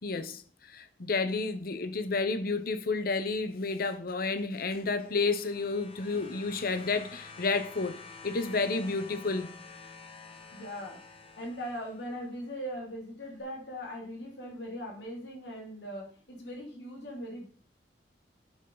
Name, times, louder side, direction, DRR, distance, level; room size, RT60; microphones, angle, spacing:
voice 1, 0.0-9.5, left 3 dB, 60° left, 0.8 m, -31 dB
sound 1, 4.6-12.3 13.4-13.5, left 4 dB, 35° left, 1.1 m, -49 dB
voice 2, 10.5-11.0 11.4-17.5, equal, 80° left, 2.8 m, -40 dB
7.9 x 7.0 x 3.9 m
head